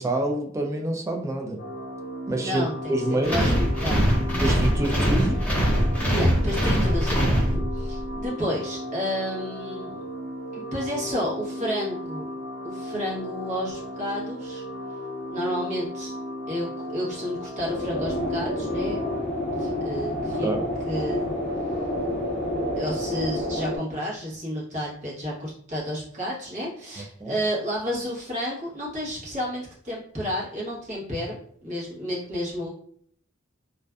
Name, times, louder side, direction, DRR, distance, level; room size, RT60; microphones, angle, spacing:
voice 1, 0.0-1.6 2.3-2.6 2.9-3.5 4.4-5.4 20.4-20.6 27.0-27.4, right 1 dB, 15° right, 2 dB, 0.3 m, -27 dB
sound 1, 1.6-19.2, equal, 90° left, 0.5 m, -36 dB
voice 2, 2.3-4.1 4.9-5.3 6.1-10.0 10.5-12.3 12.6-14.6 15.3-16.1 16.5-19.0 19.6-20.5 20.9-21.3 22.8-32.7, equal, 40° right, -6 dB, 1.0 m, -31 dB
sound 2, 3.2-8.0, equal, 10° left, 0.8 m, -22 dB
sound 3, 17.6-23.8, left 1 dB, 40° left, 0.6 m, -28 dB
2.5 x 2.2 x 2.2 m, 0.62 s
head